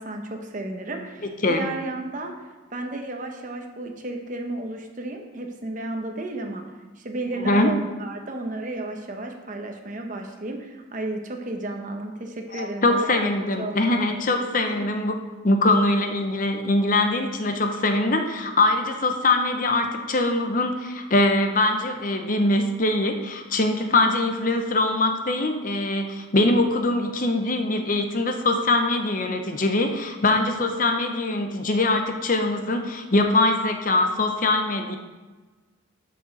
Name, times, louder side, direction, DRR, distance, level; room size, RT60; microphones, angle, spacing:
voice 1, 0.0-2.3 2.7-6.6 7.0-14.2 14.7-14.9, right 2 dB, 40° right, 3 dB, 0.9 m, -33 dB
voice 2, 12.5-15.2 15.4-35.0, left 2 dB, 40° left, 5 dB, 0.7 m, -22 dB
12.5 x 5.1 x 4.0 m, 1.3 s
head